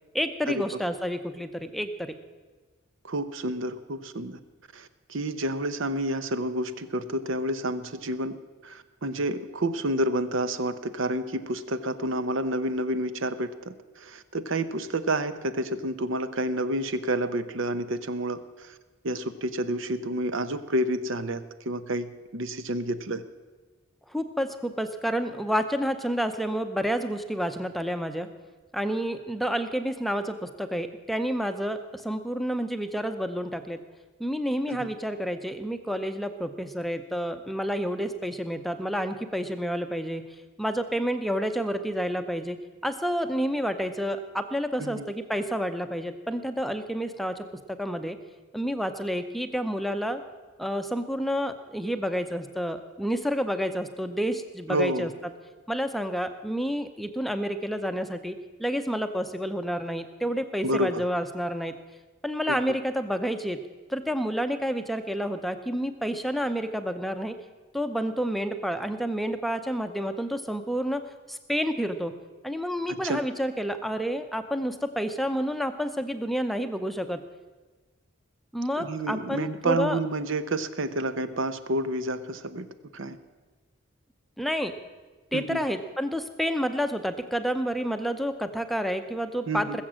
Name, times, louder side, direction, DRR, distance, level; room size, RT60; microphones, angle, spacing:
voice 1, 0.1-2.1 24.1-28.3 28.7-33.8 34.2-40.3 40.6-42.6 42.8-47.4 47.8-48.2 48.5-50.2 50.6-55.3 55.7-61.7 62.2-63.6 63.9-67.3 67.7-71.0 71.3-72.1 72.4-77.2 78.5-80.0 84.4-84.7 85.3-89.8, equal, ahead, 8 dB, 0.6 m, -29 dB
voice 2, 3.0-4.4 4.7-8.4 8.6-18.7 19.0-23.2 34.7-34.9 44.8-45.1 54.7-55.1 60.6-61.0 62.5-62.6 72.9-73.2 78.8-82.7 82.9-83.2 85.3-85.6 89.5-89.8, right 1 dB, 65° right, 12 dB, 0.8 m, -29 dB
20.0 x 7.3 x 7.5 m, 1.3 s
head